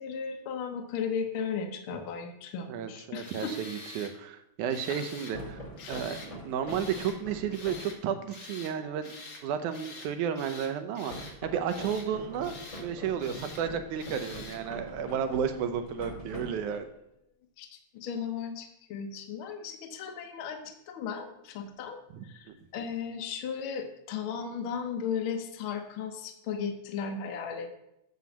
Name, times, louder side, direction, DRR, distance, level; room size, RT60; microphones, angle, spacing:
voice 1, 0.0-3.5 4.9-5.0 5.8-6.0 17.6-17.7 17.9-27.7, left 6 dB, 65° left, 3 dB, 1.3 m, -36 dB
voice 2, 2.7-9.2 9.4-12.6 12.8-16.9 22.1-22.9, right 8 dB, 85° right, 8 dB, 2.2 m, -33 dB
Tools, 3.2-4.1 4.7-5.4 5.8-6.3 6.7-7.2 7.5-8.0 8.3-8.7 9.0-9.4 9.7-10.1 10.4-11.4 11.7-12.1 12.4-12.9 13.2-13.6 14.0-14.6, left 3 dB, 45° left, 1.2 m, -46 dB
sound 1, 5.3-8.0 11.1-17.0, equal, 25° left, 0.8 m, -44 dB
9.4 x 3.8 x 7.1 m, 0.81 s
omnidirectional pair, 3.4 m